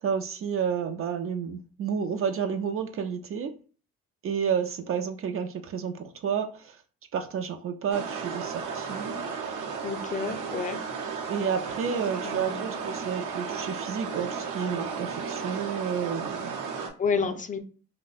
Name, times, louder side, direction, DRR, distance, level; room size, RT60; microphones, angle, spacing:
voice 1, 0.0-3.5 4.2-6.8 7.1-9.2 11.3-16.5 17.2-17.3, right 7 dB, 50° right, 0.4 m, -30 dB
sound 1, 7.9-16.9, right 6 dB, 80° right, 0.7 m, -34 dB
voice 2, 9.8-10.8 12.2-12.6 17.0-17.6, left 5 dB, 25° left, 0.4 m, -30 dB
2.5 x 2.1 x 3.9 m
cardioid pair, 90°, 30 cm